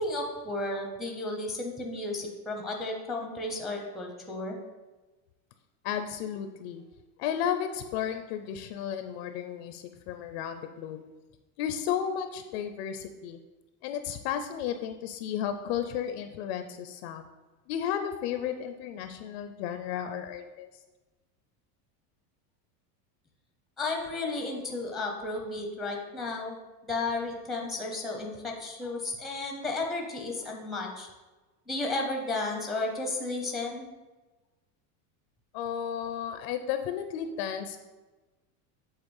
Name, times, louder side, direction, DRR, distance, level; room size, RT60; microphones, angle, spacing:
voice 1, 0.0-4.6 23.8-26.6 26.8-31.1 31.7-33.9, left 2 dB, ahead, 1 dB, 0.6 m, -33 dB
voice 2, 5.8-6.8 7.2-11.0 11.6-13.4 13.8-17.2 17.7-20.7 35.5-37.8, left 9 dB, 45° left, 8 dB, 0.5 m, -33 dB
8.0 x 4.1 x 7.0 m, 1.2 s
supercardioid pair, 170°, 46 cm